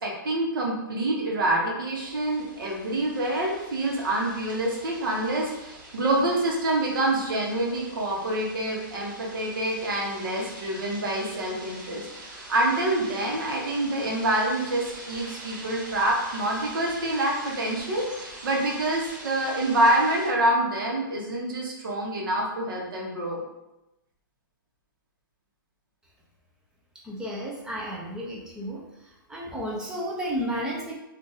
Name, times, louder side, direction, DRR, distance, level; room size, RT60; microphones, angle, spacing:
voice 1, 0.0-23.4, right 1 dB, 75° right, -1 dB, 1.0 m, -26 dB
sound 1, 1.9-20.3, right 2 dB, 55° right, 1.3 m, -44 dB
voice 2, 27.0-28.8 29.3-30.9, equal, 5° right, -4 dB, 0.5 m, -32 dB
2.5 x 2.5 x 3.9 m, 0.93 s
hypercardioid pair, 160°, 12 cm